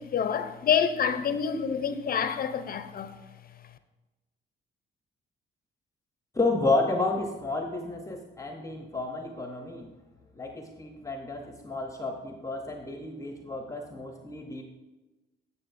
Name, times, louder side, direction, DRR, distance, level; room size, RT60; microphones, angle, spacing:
voice 1, 0.0-3.2, left 7 dB, 50° left, 0.6 m, -27 dB
voice 2, 6.3-9.9 10.3-14.6, left 2 dB, 15° left, 0.8 m, -31 dB
10.0 x 7.0 x 2.6 m
cardioid pair, 90°, 20 cm